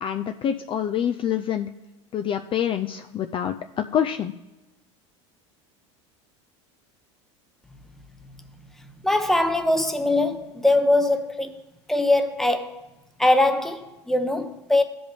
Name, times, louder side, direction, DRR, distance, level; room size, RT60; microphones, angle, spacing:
voice 1, 0.0-1.7 2.1-4.3, left 9 dB, 35° left, 0.4 m, -26 dB
voice 2, 9.0-11.6 11.9-12.9 13.2-14.8, left 2 dB, ahead, 0.8 m, -22 dB
15.0 x 5.2 x 3.4 m
supercardioid pair, 95°, 15 cm